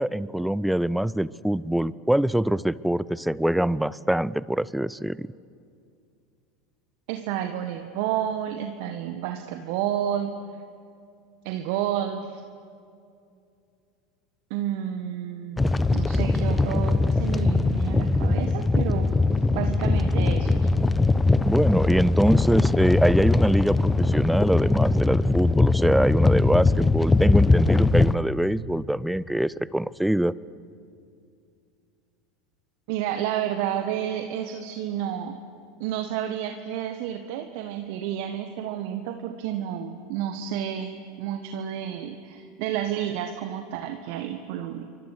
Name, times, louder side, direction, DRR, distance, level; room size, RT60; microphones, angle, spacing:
voice 1, 0.0-5.3 21.4-30.3, right 1 dB, 5° right, 21 dB, 0.6 m, -24 dB
voice 2, 7.1-10.4 11.4-12.4 14.5-15.6 15.9-20.7 32.9-35.4 35.8-44.9, right 10 dB, 60° right, 6 dB, 1.5 m, -30 dB
sound 1, 15.6-28.2, left 3 dB, 15° left, 0.9 m, -21 dB
28.5 x 24.5 x 6.6 m, 2.4 s
figure-of-eight pair, 80°, 0 cm